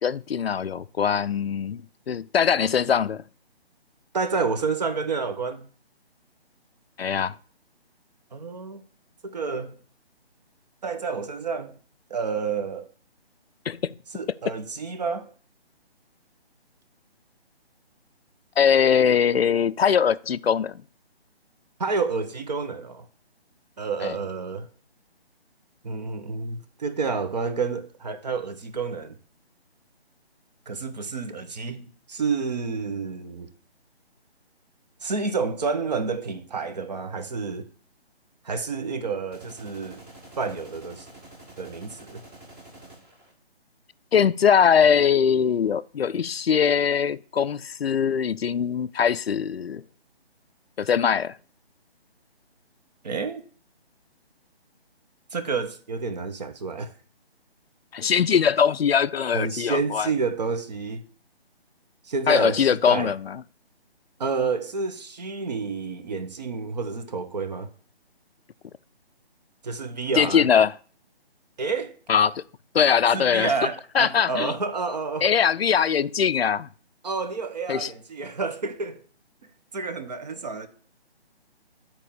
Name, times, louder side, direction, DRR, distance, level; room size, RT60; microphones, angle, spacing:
voice 1, 0.0-1.8 2.1-3.2 7.0-7.3 13.7-13.9 18.6-20.8 24.0-24.2 44.1-49.8 50.8-51.4 57.9-60.1 62.3-63.4 70.2-70.7 72.1-72.4 72.7-73.5 73.9-74.5 75.2-76.7 77.7-77.9, left 7 dB, 65° left, 0.5 m, -21 dB
voice 2, 4.1-5.7 8.3-8.9 9.2-9.8 10.8-11.7 12.1-12.9 14.1-15.3 21.8-23.1 23.8-24.7 25.8-29.2 30.7-33.5 35.0-37.7 38.4-40.0 40.4-41.1 41.6-42.2 53.0-53.4 55.3-56.9 59.3-61.0 62.0-63.1 64.2-67.7 69.6-70.5 71.6-71.9 73.1-75.4 77.0-79.0 79.7-80.7, right 4 dB, 40° right, 1.1 m, -29 dB
sound 1, 39.3-43.3, right 1 dB, 10° right, 1.0 m, -47 dB
10.0 x 4.5 x 7.1 m
figure-of-eight pair, 155°, 32 cm